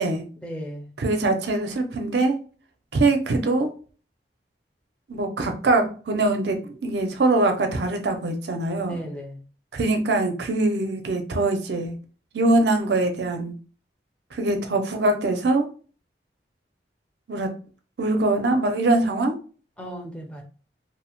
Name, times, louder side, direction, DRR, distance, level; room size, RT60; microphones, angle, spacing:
voice 1, 0.4-0.9 8.9-9.5 19.8-20.4, equal, 5° left, 0.5 m, -36 dB
voice 2, 1.0-2.3 2.9-3.7 5.1-9.0 9.7-11.9 12.3-13.5 14.3-15.7 17.3-17.5 18.0-19.3, right 2 dB, 75° right, 0.5 m, -23 dB
2.6 x 2.0 x 2.9 m
head